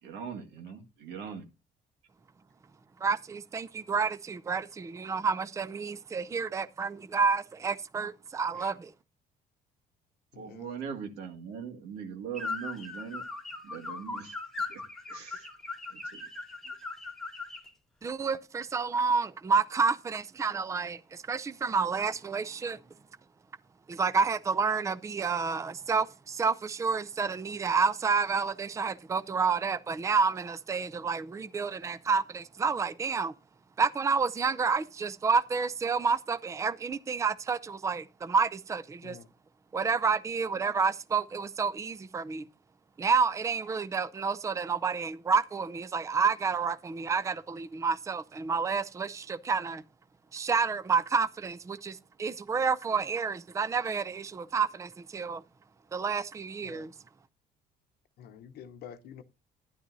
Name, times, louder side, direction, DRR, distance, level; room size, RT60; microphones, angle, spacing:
voice 1, 0.0-1.5 10.4-13.2 13.6-14.3 14.7-14.8 15.1-15.5 15.9-16.2, right 7 dB, 85° right, 1.9 m, -41 dB
voice 2, 3.0-8.9 18.0-22.8 23.9-33.3 33.8-39.2 39.7-42.5 43.0-49.8 50.3-55.4 55.9-56.9, right 5 dB, 20° right, 0.5 m, -29 dB
voice 3, 10.3-10.8 15.2-15.3 39.0-39.3 56.6-56.9 58.2-59.2, left 8 dB, 65° left, 0.9 m, -48 dB
sound 1, 12.3-17.7, left 3 dB, ahead, 1.5 m, -39 dB
12.0 x 10.5 x 2.7 m
cardioid pair, 110°, 17 cm